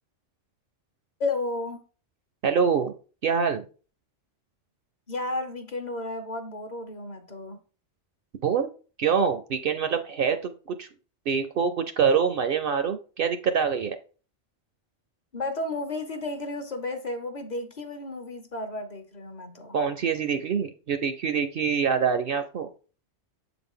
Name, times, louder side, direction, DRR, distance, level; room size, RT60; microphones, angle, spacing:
voice 1, 1.2-1.8 5.1-7.6 15.3-19.8, left 2 dB, 45° left, 0.8 m, -33 dB
voice 2, 2.4-2.9 3.2-3.6 8.4-8.7 9.0-10.9 11.3-14.0 19.7-22.7, right 6 dB, 60° right, 0.7 m, -25 dB
7.4 x 3.9 x 3.7 m
omnidirectional pair, 1.2 m